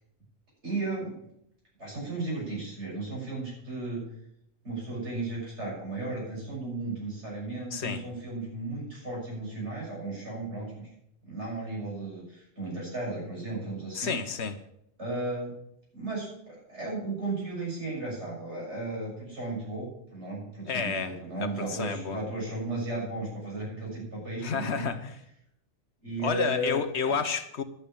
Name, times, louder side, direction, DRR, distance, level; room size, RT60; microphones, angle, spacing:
voice 1, 0.6-1.2 1.8-4.1 4.6-10.9 11.3-14.1 15.0-15.5 15.9-24.9 26.0-26.8 27.1-27.2, right 2 dB, 75° right, -5 dB, 7.0 m, -35 dB
voice 2, 7.7-8.0 13.9-14.6 20.7-22.2 24.4-25.1 26.2-27.6, left 6 dB, 70° left, 9 dB, 1.2 m, -30 dB
11.5 x 7.0 x 8.6 m, 0.75 s
omnidirectional pair, 1.2 m